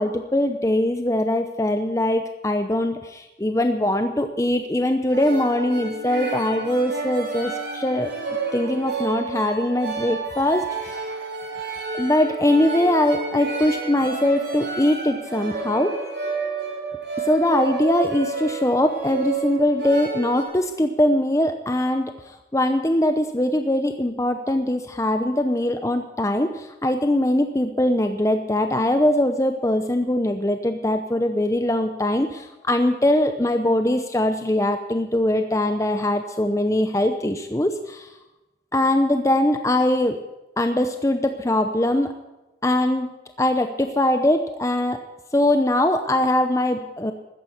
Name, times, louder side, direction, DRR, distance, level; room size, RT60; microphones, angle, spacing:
voice 1, 0.0-8.1 8.5-11.2 12.0-15.9 17.3-38.1 38.7-40.2 40.6-42.1 42.6-43.1 43.4-45.0 45.3-47.1, left 1 dB, 15° left, 7 dB, 0.7 m, -22 dB
sound 1, 5.1-20.4, right 4 dB, 80° right, 6.2 m, -30 dB
14.0 x 10.0 x 9.8 m, 1.0 s
head